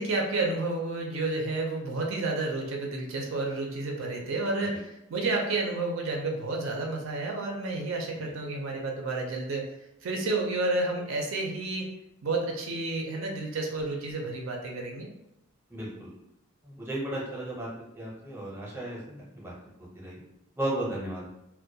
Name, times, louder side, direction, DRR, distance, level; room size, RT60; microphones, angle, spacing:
voice 1, 0.0-9.7 10.0-11.9 12.2-15.1, right 2 dB, 70° right, 1 dB, 0.4 m, -30 dB
voice 2, 15.7-16.1 16.6-19.5 19.9-20.2 20.6-21.3, right 1 dB, 10° right, -5 dB, 0.6 m, -35 dB
2.2 x 2.1 x 2.6 m, 0.85 s
head